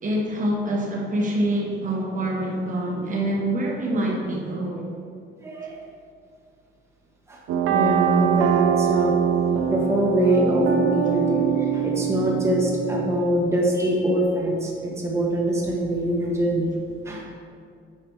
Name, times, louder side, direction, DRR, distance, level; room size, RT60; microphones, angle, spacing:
voice 1, 0.0-5.0, right 1 dB, 40° right, -1 dB, 1.2 m, -26 dB
voice 2, 5.4-5.8 7.3-7.4 7.7-9.1 9.5-16.7 17.0-17.2, right 1 dB, 15° right, -2 dB, 1.2 m, -24 dB
sound 1, 7.5-13.1, right 8 dB, 90° right, 0.6 m, -23 dB
8.9 x 5.0 x 4.7 m, 2.3 s
cardioid pair, 140°, 21 cm